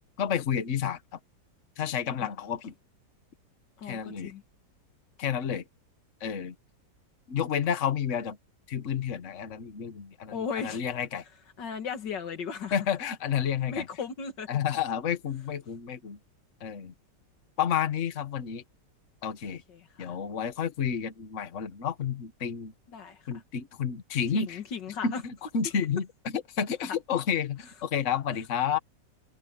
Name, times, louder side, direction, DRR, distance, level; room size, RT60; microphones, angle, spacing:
voice 1, 0.2-1.0 1.8-2.7 3.8-4.3 5.2-5.6 6.2-6.5 7.3-8.4 8.7-11.2 12.7-13.8 14.5-16.2 16.6-16.9 17.6-18.6 19.2-19.6 20.0-22.7 23.3-24.6 25.0-26.1 26.3-28.8, left 8 dB, 45° left, 1.6 m, -30 dB
voice 2, 3.8-4.4 10.3-10.8 11.6-12.7 13.7-14.5 19.5-20.1 22.9-23.3 24.3-25.2 26.8-27.0, left 6 dB, 85° left, 2.3 m, -36 dB
omnidirectional pair, 1.9 m